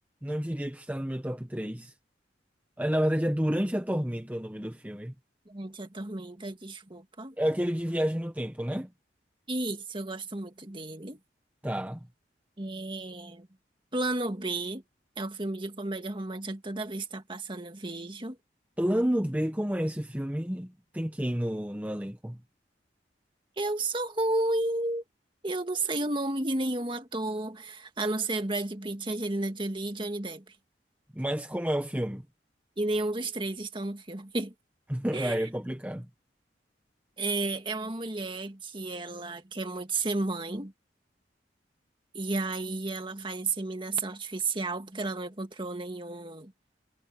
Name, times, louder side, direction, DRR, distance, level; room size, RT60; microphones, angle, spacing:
voice 1, 0.2-1.9 2.8-5.1 7.4-8.9 11.6-12.0 18.8-22.4 31.1-32.2 34.9-36.1, equal, 10° right, 1.1 m, -30 dB
voice 2, 5.5-7.4 9.5-11.2 12.6-13.5 13.9-14.8 15.2-18.4 23.6-25.0 25.4-30.6 32.8-34.5 35.1-35.5 37.2-40.7 42.1-46.5, right 2 dB, 30° right, 2.0 m, -32 dB
head